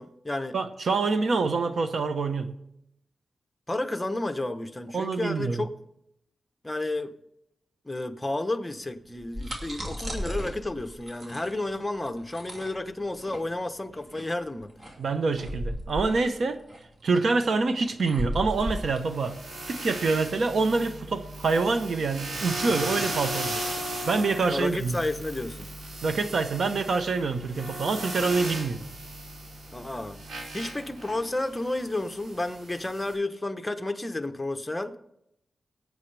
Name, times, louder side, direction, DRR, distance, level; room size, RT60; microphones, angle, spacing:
voice 1, 0.0-0.5 3.7-5.7 6.6-7.1 7.8-14.7 24.5-25.7 29.7-30.2 30.5-34.9, left 2 dB, 15° left, 1.0 m, -31 dB
voice 2, 0.5-2.5 4.9-5.7 15.0-16.6 17.0-19.4 19.7-23.7 24.1-25.0 26.0-28.8, right 4 dB, 70° right, 1.0 m, -26 dB
sound 1, 9.0-20.5, equal, 40° right, 2.6 m, -36 dB
sound 2, 18.5-33.1, right 1 dB, 85° right, 5.2 m, -37 dB
21.0 x 8.7 x 3.4 m
cardioid pair, 75°, 0 cm